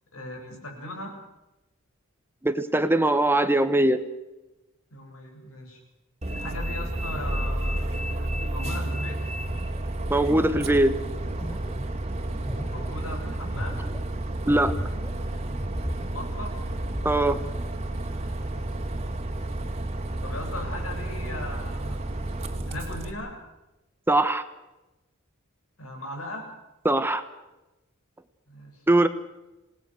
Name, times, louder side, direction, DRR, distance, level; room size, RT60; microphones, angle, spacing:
voice 1, 0.1-1.1 4.9-5.8 6.3-9.2 12.5-13.8 16.0-16.6 18.4-19.3 20.2-22.0 22.6-23.3 25.8-26.5 28.5-28.8, left 1 dB, 80° left, 2 dB, 7.9 m, -39 dB
voice 2, 2.4-4.0 10.1-10.9 14.5-14.7 17.0-17.4 24.1-24.4 26.8-27.2 28.9-29.1, right 1 dB, 10° right, 10 dB, 1.0 m, -21 dB
Bus, 6.2-23.1, right 1 dB, 30° right, 2.4 m, -31 dB
sound 1, 9.5-15.2 15.5-17.1, equal, 10° left, 6.9 m, -37 dB
28.0 x 19.5 x 6.4 m, 1.0 s
head